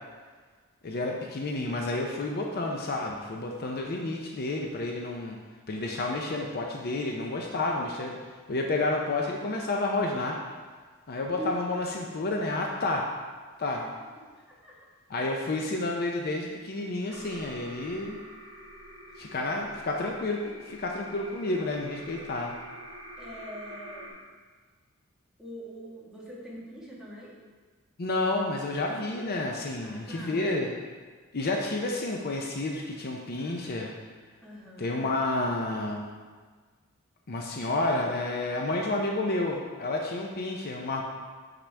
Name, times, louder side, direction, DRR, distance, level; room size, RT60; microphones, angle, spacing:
voice 1, 0.8-5.4 5.7-8.2 8.5-10.4 11.1-13.1 13.6-13.8 15.1-18.2 19.2-22.5 28.0-30.7 31.3-33.9 34.8-36.1 37.3-41.0, left 2 dB, 50° left, 1 dB, 0.6 m, -30 dB
sound 1, 17.1-24.1, equal, 75° right, 1.2 m, -47 dB
voice 2, 23.2-24.1 25.4-27.4 29.8-30.6 34.4-35.0, equal, 5° right, -7 dB, 1.5 m, -42 dB
6.7 x 6.0 x 3.3 m, 1.5 s
head